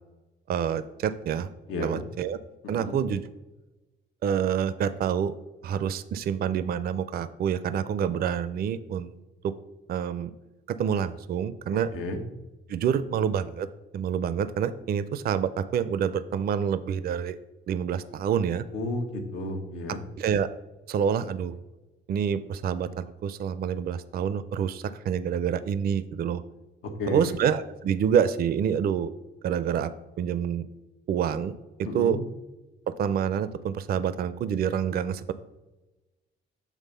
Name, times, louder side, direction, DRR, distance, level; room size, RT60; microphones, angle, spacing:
voice 1, 0.5-1.5 1.8-2.4 2.7-3.2 4.2-5.3 5.6-9.2 9.4-9.5 9.9-10.3 10.7-11.9 12.7-13.7 13.9-17.4 17.7-18.6 20.2-20.5 20.9-21.6 22.1-26.4 27.1-29.1 29.4-30.7 31.1-31.5 31.8-32.2 32.9-35.3, right 8 dB, 50° right, 14 dB, 0.4 m, -27 dB
voice 2, 1.7-2.0 2.6-3.0 11.9-12.2 18.7-20.0 27.0-27.3 31.8-32.2, left 2 dB, 85° left, 3 dB, 1.1 m, -32 dB
7.3 x 3.5 x 5.4 m, 1.1 s
cardioid pair, 90°, 20 cm